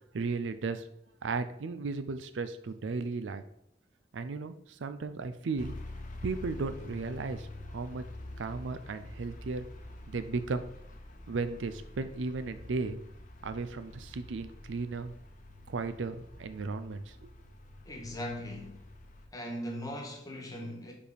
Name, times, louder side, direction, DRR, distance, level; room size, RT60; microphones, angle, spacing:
voice 1, 0.1-0.9 1.2-3.4 4.1-5.7 6.2-8.0 8.4-9.7 10.1-10.7 11.3-13.0 13.4-15.1 15.7-17.3, right 4 dB, 80° right, 0.5 m, -35 dB
sound 1, 5.6-19.3, left 1 dB, 45° left, 0.8 m, -47 dB
voice 2, 17.8-18.8 19.3-20.9, equal, 20° left, 1.4 m, -39 dB
4.9 x 4.7 x 5.0 m
head